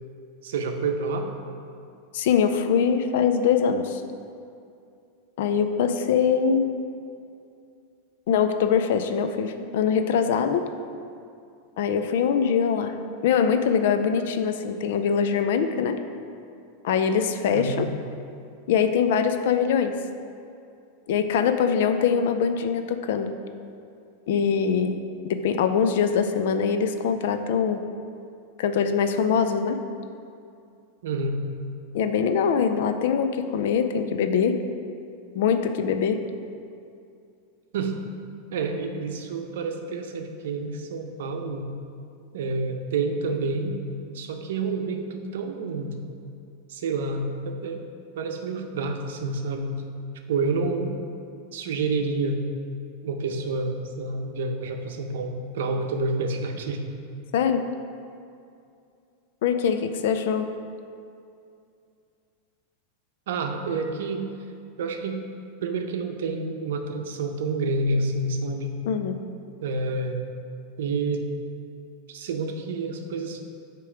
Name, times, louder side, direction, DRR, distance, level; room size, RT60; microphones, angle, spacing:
voice 1, 0.4-1.4 17.5-17.9 31.0-31.4 37.7-38.0 38.5-41.7 42.3-43.8 44.1-46.0 46.7-47.8 48.2-49.8 50.3-51.0 51.5-52.4 53.0-56.8 63.3-64.3 64.8-65.2 65.6-68.8 69.6-70.2 70.8-71.3 72.1-73.4, right 3 dB, 80° right, 4 dB, 0.6 m, -28 dB
voice 2, 2.1-4.0 5.4-6.7 8.3-10.7 11.8-12.9 13.2-16.0 16.8-17.9 18.7-20.0 21.1-23.3 24.3-25.0 25.2-27.8 28.6-29.8 31.9-34.6 35.3-36.2 57.3-57.6 59.4-60.5 68.9-69.2, left 7 dB, 70° left, 8 dB, 0.5 m, -23 dB
8.5 x 3.0 x 4.9 m, 2.5 s
supercardioid pair, 130°, 0 cm